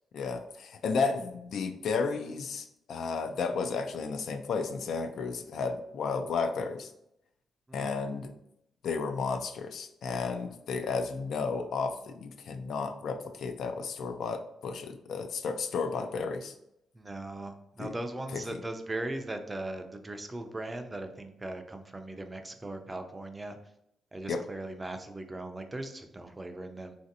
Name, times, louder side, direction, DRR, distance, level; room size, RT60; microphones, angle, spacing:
voice 1, 0.1-6.9 7.7-8.3 8.8-16.5 17.8-17.9 24.3-24.4, left 5 dB, 70° left, 7 dB, 0.3 m, -33 dB
voice 2, 7.7-8.0 16.9-23.6 24.1-27.0, right 2 dB, 20° right, 6 dB, 0.4 m, -39 dB
3.1 x 2.6 x 2.6 m, 0.78 s
cardioid pair, 90°, 0 cm